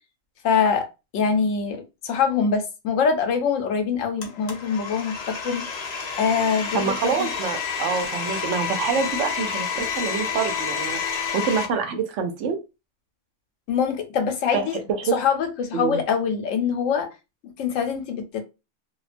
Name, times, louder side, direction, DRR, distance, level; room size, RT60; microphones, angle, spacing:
voice 1, 0.4-0.9 1.1-5.6 6.2-7.3 13.7-14.8 15.1-17.1 17.4-18.4, left 6 dB, 90° left, 1.0 m, -24 dB
Domestic sounds home sounds, 4.2-11.7, left 6 dB, 55° left, 0.4 m, -29 dB
voice 2, 6.7-12.6 14.5-14.7 15.0-15.2 15.7-16.0, right 6 dB, 75° right, 0.9 m, -26 dB
2.4 x 2.2 x 2.4 m
omnidirectional pair, 1.3 m